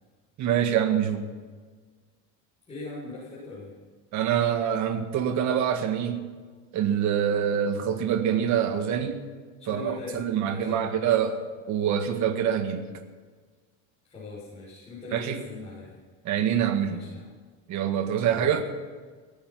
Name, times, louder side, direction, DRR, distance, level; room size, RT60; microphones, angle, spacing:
voice 1, 0.4-1.3 4.1-6.3 6.7-9.2 9.7-11.4 11.7-12.9 15.1-15.4 16.3-17.0 17.7-18.6, right 9 dB, 45° right, 6 dB, 1.7 m, -25 dB
voice 2, 2.7-3.7 9.6-11.3 14.0-16.0 16.8-17.2 18.3-18.5, left 3 dB, 15° left, -8 dB, 6.6 m, -40 dB
17.0 x 14.5 x 6.0 m, 1.5 s
cardioid pair, 140°, 39 cm